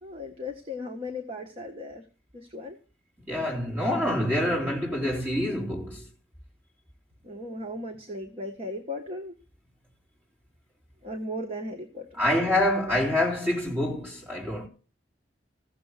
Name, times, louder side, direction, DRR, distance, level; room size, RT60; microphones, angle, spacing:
voice 1, 0.0-2.1 2.3-2.8 7.2-9.3 11.0-12.5, left 1 dB, 30° right, 1.4 m, -37 dB
voice 2, 3.2-6.0 12.2-14.7, left 1 dB, 10° right, 4.3 m, -26 dB
16.0 x 7.1 x 6.5 m
head